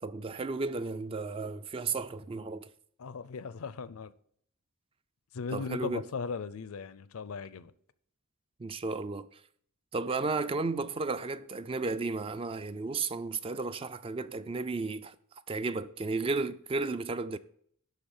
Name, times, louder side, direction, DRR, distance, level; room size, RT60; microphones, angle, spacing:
voice 1, 0.0-2.7 5.5-6.0 8.6-9.3 9.9-15.2 15.5-17.4, right 3 dB, 25° right, 0.3 m, -33 dB
voice 2, 3.0-4.1 5.3-7.7, left 5 dB, 65° left, 0.5 m, -38 dB
11.5 x 4.0 x 7.2 m
head